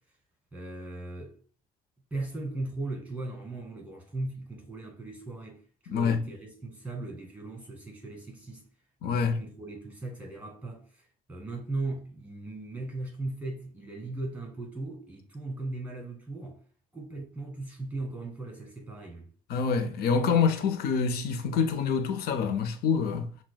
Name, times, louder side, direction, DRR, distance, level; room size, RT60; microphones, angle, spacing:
voice 1, 0.5-1.4 2.1-8.7 9.0-16.6 16.9-19.3, right 2 dB, 10° right, 1.6 m, -38 dB
voice 2, 5.9-6.2 9.0-9.4 19.5-23.3, left 6 dB, 65° left, 0.6 m, -26 dB
5.8 x 2.2 x 2.2 m
cardioid pair, 110°, 17 cm